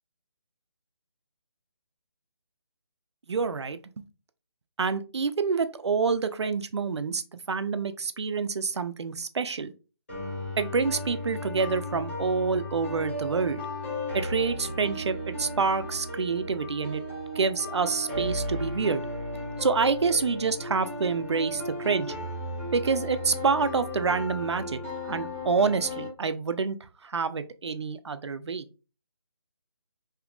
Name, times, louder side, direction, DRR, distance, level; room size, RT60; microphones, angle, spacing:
voice 1, 3.3-4.0 4.8-7.2 7.5-9.7 10.6-13.6 14.1-17.0 17.4-19.0 19.6-22.1 22.7-24.8 25.0-26.8 27.0-28.7, right 5 dB, 75° right, 11 dB, 0.5 m, -27 dB
sound 1, 10.1-26.1, left 1 dB, 25° left, 1.0 m, -35 dB
3.7 x 2.8 x 2.3 m, 0.33 s
hypercardioid pair, 175°, 15 cm